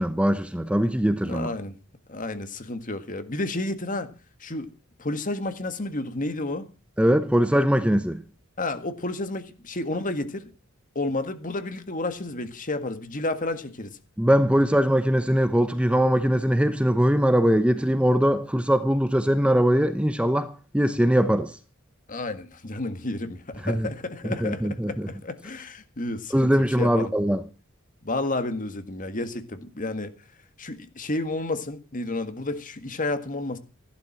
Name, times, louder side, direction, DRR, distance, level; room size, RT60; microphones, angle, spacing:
voice 1, 0.0-1.5 7.0-8.2 14.2-21.6 23.6-23.9 24.2-25.1 26.3-27.4, equal, 5° right, 0.9 m, -21 dB
voice 2, 1.2-1.8 2.1-4.1 4.4-4.7 5.0-6.7 8.6-10.5 11.0-14.0 22.1-26.5 26.8-27.1 28.0-30.1 30.6-33.6, left 2 dB, 40° left, 1.8 m, -31 dB
14.5 x 12.0 x 5.9 m
head